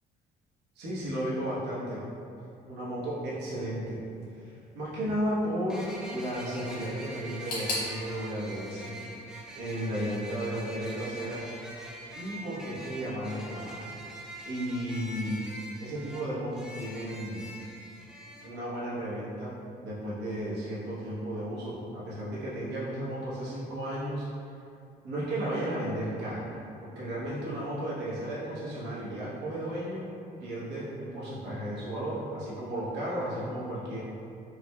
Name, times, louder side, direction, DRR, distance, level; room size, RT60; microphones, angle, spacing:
voice 1, 0.7-2.0 2.6-4.0 4.3-8.9 9.5-11.4 12.1-13.9 14.4-15.4 15.8-17.4 18.4-19.6 19.8-24.3 25.0-26.5 26.8-30.0 30.4-34.0, right 1 dB, 80° right, -8 dB, 1.1 m, -34 dB
sound 1, 4.1-4.2 5.7-18.5, right 1 dB, 5° right, 0.4 m, -44 dB
sound 2, 7.5-10.3 10.6-11.4 11.7-11.8 12.7-12.8, left 2 dB, 75° left, 1.4 m, -39 dB
4.7 x 2.5 x 2.2 m, 2.5 s
cardioid pair, 110°, 17 cm